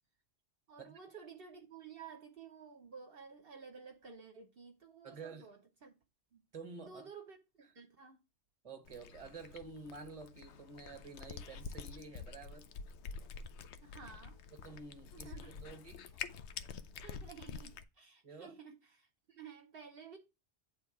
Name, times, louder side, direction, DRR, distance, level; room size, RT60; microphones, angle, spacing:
voice 1, 0.7-5.9 6.3-6.4 6.8-8.2 13.8-14.4 15.1-15.5 17.0-20.2, right 6 dB, 60° right, 1.0 m, -53 dB
voice 2, 5.0-5.5 6.5-7.1 8.6-12.7 14.5-16.1 18.2-18.5, right 4 dB, 35° right, 1.1 m, -50 dB
Cat, 8.9-17.8, left 6 dB, 80° left, 0.9 m, -48 dB
8.8 x 3.5 x 4.7 m
omnidirectional pair, 1.1 m